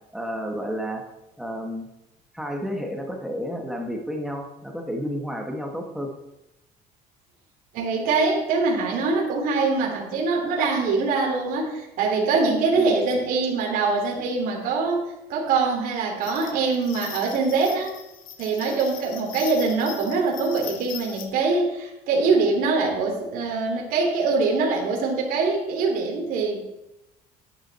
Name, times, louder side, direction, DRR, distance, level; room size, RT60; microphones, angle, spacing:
voice 1, 0.1-1.0 1.4-1.9 2.3-6.1 12.7-13.0, equal, ahead, 2 dB, 1.4 m, -31 dB
voice 2, 7.7-17.9 18.4-26.6, right 4 dB, 60° right, -1 dB, 3.0 m, -23 dB
sound 1, 16.2-21.3, left 9 dB, 60° left, 1.4 m, -40 dB
11.5 x 10.0 x 4.2 m, 0.92 s
cardioid pair, 170°, 16 cm